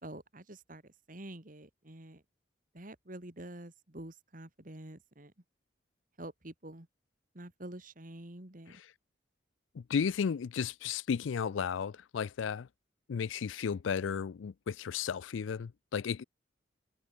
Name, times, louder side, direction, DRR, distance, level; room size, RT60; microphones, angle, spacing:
voice 1, 0.0-2.2 2.7-5.3 6.2-6.9 7.3-8.8, right 1 dB, 45° right, 2.5 m, -47 dB
voice 2, 9.7-12.7 13.1-16.2, left 6 dB, 85° left, 0.4 m, -34 dB
head